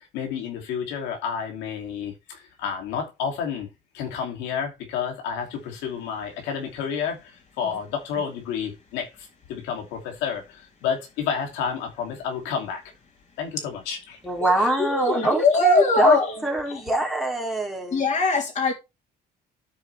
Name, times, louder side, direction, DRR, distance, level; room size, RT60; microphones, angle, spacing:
voice 1, 0.1-3.7 3.9-7.2 7.6-9.1 9.5-12.8 13.4-14.2, left 7 dB, 90° left, 2.8 m, -30 dB
voice 2, 14.2-18.1, right 2 dB, ahead, 2.8 m, -25 dB
voice 3, 14.8-16.3 17.9-18.7, left 3 dB, 40° left, 3.3 m, -20 dB
12.5 x 4.8 x 3.4 m
cardioid pair, 120°, 18 cm